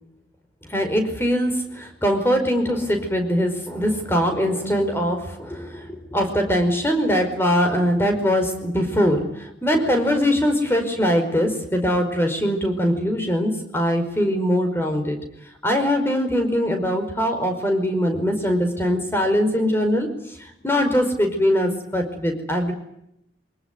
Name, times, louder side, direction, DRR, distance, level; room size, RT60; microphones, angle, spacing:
voice 1, 0.7-15.2 15.6-22.7, equal, 15° left, 5 dB, 5.1 m, -22 dB
25.0 x 20.5 x 9.3 m, 0.79 s
head